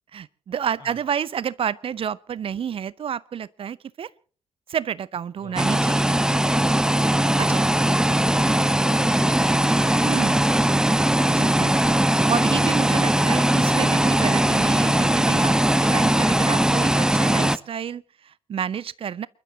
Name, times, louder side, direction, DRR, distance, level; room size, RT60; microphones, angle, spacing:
voice 1, 0.1-4.1 4.7-6.2 7.4-7.7 10.0-10.4 11.3-19.3, right 8 dB, 45° right, 0.7 m, -30 dB
voice 2, 5.4-7.1 7.6-11.4, left 4 dB, 80° left, 4.9 m, -48 dB
sound 1, 5.6-17.6, right 1 dB, 5° right, 0.8 m, -20 dB
29.0 x 12.0 x 2.8 m
figure-of-eight pair, 40°, 13 cm